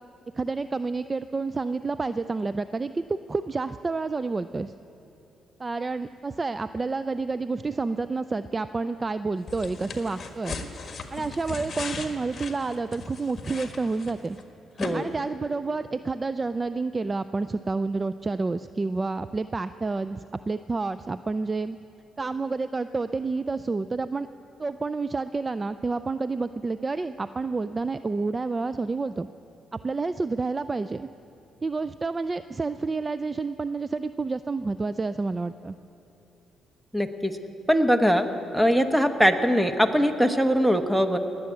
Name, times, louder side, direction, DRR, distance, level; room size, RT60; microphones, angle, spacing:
voice 1, 0.3-4.7 5.6-10.6 11.1-14.4 14.9-21.8 22.2-24.3 24.6-29.3 29.8-31.1 31.6-35.8, right 3 dB, 25° right, 12 dB, 0.3 m, -29 dB
sound 1, 9.5-14.4 14.8-14.9, left 4 dB, 40° left, 1.6 m, -37 dB
voice 2, 36.9-37.4 37.7-38.3 38.5-41.2, equal, 5° right, 8 dB, 1.0 m, -21 dB
19.5 x 7.6 x 9.6 m, 2.9 s
cardioid pair, 90°, 0 cm